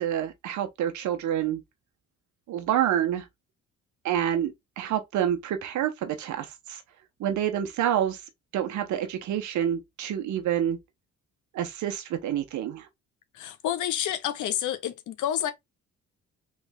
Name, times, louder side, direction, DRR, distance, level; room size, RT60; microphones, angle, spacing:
voice 1, 0.0-1.6 2.5-3.3 4.0-6.8 7.2-8.2 8.5-10.8 11.5-12.9, right 10 dB, 70° right, 0.8 m, -28 dB
voice 2, 13.3-15.5, left 11 dB, 80° left, 0.8 m, -29 dB
3.2 x 3.1 x 3.4 m
cardioid pair, 90°, 30 cm